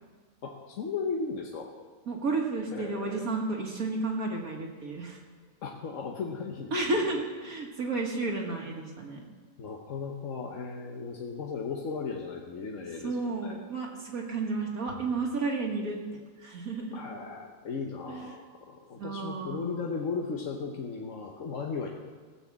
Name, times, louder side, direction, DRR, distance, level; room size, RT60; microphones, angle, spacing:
voice 1, 0.4-1.7 2.7-3.2 5.6-7.0 9.6-13.6 16.9-21.9, left 5 dB, 50° left, 0 dB, 1.2 m, -36 dB
voice 2, 2.1-5.2 6.7-9.3 13.0-17.1 18.1-18.3 19.0-19.9, right 3 dB, 55° right, 0 dB, 1.8 m, -32 dB
15.5 x 7.0 x 7.3 m, 1.4 s
omnidirectional pair, 1.8 m